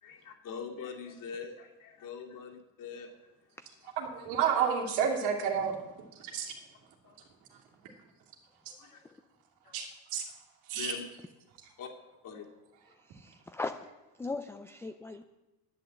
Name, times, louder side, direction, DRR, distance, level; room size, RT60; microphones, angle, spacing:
voice 1, 0.0-3.2 7.0-7.2 8.8-9.0 9.6-9.7 10.7-11.0 11.8-11.9 12.2-12.4, left 6 dB, 50° left, 1 dB, 2.5 m, -43 dB
voice 2, 4.0-5.8 6.3-6.5 9.7-9.9 10.1-10.2 10.7-10.9, right 7 dB, 85° right, 1 dB, 2.7 m, -29 dB
voice 3, 13.1-13.9 14.2-15.2, left 3 dB, 5° left, 8 dB, 0.3 m, -38 dB
10.5 x 9.3 x 7.6 m, 1.0 s
cardioid pair, 130°, 41 cm